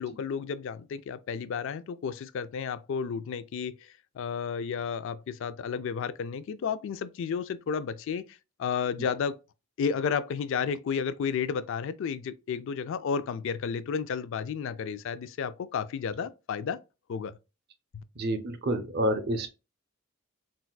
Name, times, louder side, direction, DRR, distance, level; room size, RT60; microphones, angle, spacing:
voice 1, 0.0-3.8 4.2-8.2 8.6-9.4 9.8-16.8 17.1-17.4 17.9-18.0, left 6 dB, 65° left, 0.3 m, -32 dB
voice 2, 18.2-19.5, right 1 dB, 50° right, 0.6 m, -28 dB
3.9 x 2.3 x 2.2 m
head